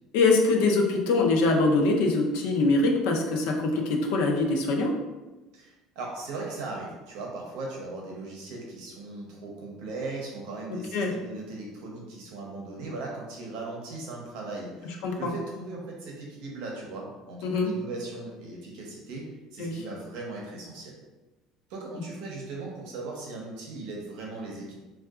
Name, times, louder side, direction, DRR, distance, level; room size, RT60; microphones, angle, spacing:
voice 1, 0.1-4.9 10.9-11.1 15.0-15.3 17.4-17.7 19.6-19.8, left 3 dB, 70° left, 1 dB, 0.5 m, -23 dB
voice 2, 5.5-20.9 21.7-24.8, right 2 dB, 60° right, -2 dB, 0.7 m, -38 dB
3.6 x 2.3 x 2.3 m, 1.1 s
cardioid pair, 180°, 0 cm